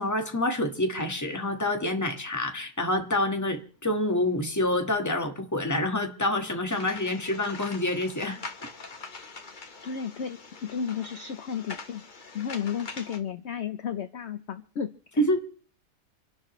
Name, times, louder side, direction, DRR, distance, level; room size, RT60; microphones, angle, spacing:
voice 1, 0.0-8.4 15.2-15.4, left 1 dB, 10° left, 4 dB, 1.5 m, -27 dB
sound 1, 6.7-13.2, left 3 dB, 30° left, 1.2 m, -43 dB
voice 2, 9.8-12.0 12.3-15.4, left 7 dB, 55° left, 9 dB, 0.9 m, -33 dB
28.0 x 11.5 x 3.1 m, 0.43 s
omnidirectional pair, 1.8 m